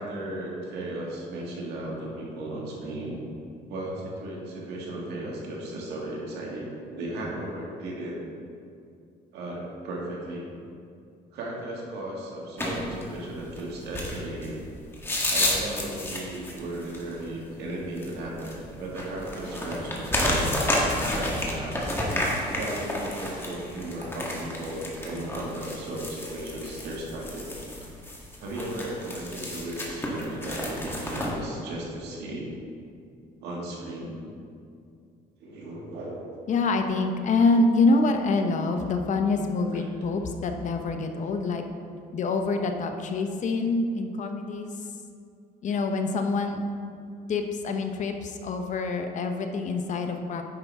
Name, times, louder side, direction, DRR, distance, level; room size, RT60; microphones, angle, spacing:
voice 1, 0.0-3.2 3.7-8.2 9.3-10.4 11.3-14.6 15.3-21.9 22.6-27.5 28.4-32.5 33.4-34.2 35.4-36.2 39.7-39.8, right 1 dB, 80° right, -3 dB, 2.0 m, -35 dB
sound 1, 12.6-31.3, left 1 dB, 15° left, 1.5 m, -31 dB
voice 2, 36.5-41.6 42.1-44.7 45.6-46.6 47.3-50.4, left 3 dB, 45° left, 5 dB, 0.7 m, -26 dB
9.5 x 5.9 x 3.5 m, 2.4 s
cardioid pair, 110°, 17 cm